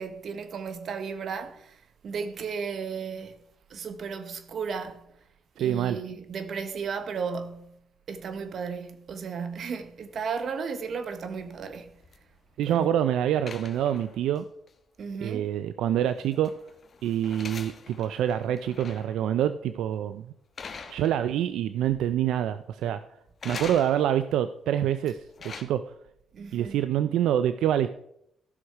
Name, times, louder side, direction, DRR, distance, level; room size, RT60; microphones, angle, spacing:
voice 1, 0.0-3.4 3.7-5.1 5.6-7.7 8.1-11.9 12.7-12.9 15.0-15.5 26.3-26.8, right 5 dB, 60° right, 1.1 m, -34 dB
voice 2, 5.6-6.0 12.6-14.4 15.2-16.5 17.0-20.3 20.9-23.0 23.4-25.2 25.4-25.8 26.5-27.9, right 10 dB, 85° right, 0.4 m, -26 dB
sound 1, 11.1-12.9 13.5-14.4 14.7-14.8 16.0-19.2 19.6-19.9 20.6-21.5 21.8-22.4 23.4-24.3 25.1-25.6, left 5 dB, 45° left, 1.2 m, -44 dB
14.5 x 6.4 x 4.6 m
cardioid pair, 90°, 0 cm